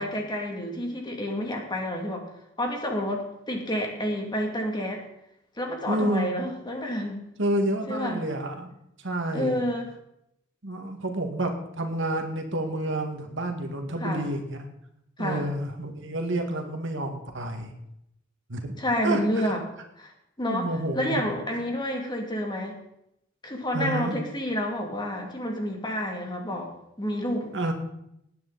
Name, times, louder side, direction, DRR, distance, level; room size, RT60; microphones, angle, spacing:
voice 1, 0.0-2.3 2.6-5.0 5.6-7.2 7.9-8.2 9.3-9.9 14.0-14.3 15.2-15.5 18.8-19.6 20.0-20.1 20.4-22.8 23.4-26.7 27.0-27.5, left 1 dB, 20° left, 1 dB, 2.6 m, -29 dB
voice 2, 5.9-6.4 7.4-8.7 9.0-9.6 10.6-14.7 15.2-17.7 18.5-19.5 20.5-21.2 23.7-24.2 27.5-27.7, right 1 dB, 65° right, 4 dB, 2.0 m, -29 dB
19.0 x 9.5 x 4.1 m, 0.79 s
head